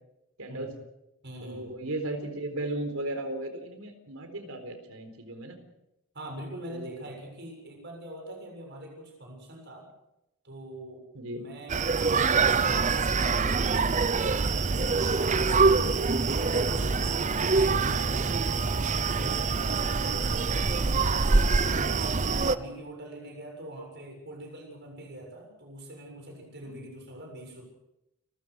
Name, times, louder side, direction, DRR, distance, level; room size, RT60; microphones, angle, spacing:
voice 1, 0.4-0.7 1.4-5.6 6.7-7.0 11.1-11.5 26.6-26.9, right 1 dB, 85° right, 7 dB, 4.1 m, -36 dB
voice 2, 1.2-1.7 6.1-9.9 10.4-11.0 11.3-12.9 13.3-14.2 14.6-15.8 16.2-21.1 21.6-27.6, right 1 dB, 55° right, 2 dB, 7.2 m, -43 dB
Screaming, 11.7-22.6, right 4 dB, 35° right, 0.7 m, -25 dB
30.0 x 14.5 x 6.4 m, 0.88 s
head